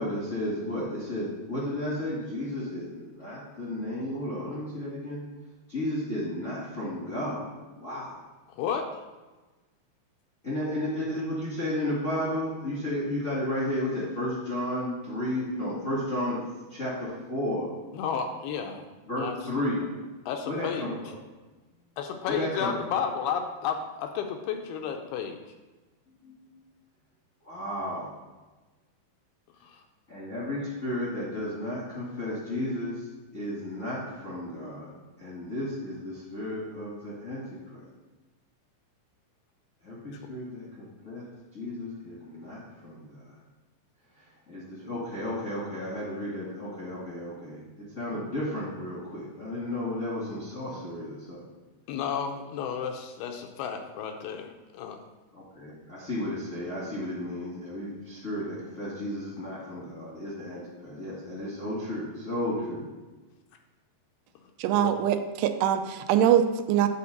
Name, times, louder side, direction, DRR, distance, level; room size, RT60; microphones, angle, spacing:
voice 1, 0.0-5.2 5.7-7.4 7.8-8.1 10.4-16.4 16.7-17.7 19.1-19.8 20.5-21.1 22.3-22.7 26.2-26.4 27.4-28.1 30.1-33.1 33.3-34.9 35.2-37.4 37.7-37.8 39.8-41.2 41.5-43.2 44.5-47.6 47.9-51.4 55.3-62.8, left 1 dB, 40° left, -7 dB, 1.1 m, -33 dB
voice 2, 8.5-8.9 17.9-18.8 19.2-19.4 20.3-20.9 22.0-25.4 29.6-29.8 51.9-55.0 64.7-64.9, left 7 dB, 80° left, 4 dB, 2.4 m, -32 dB
voice 3, 64.6-66.9, right 10 dB, 90° right, 8 dB, 2.7 m, -23 dB
8.5 x 4.2 x 6.5 m, 1.2 s
omnidirectional pair, 4.7 m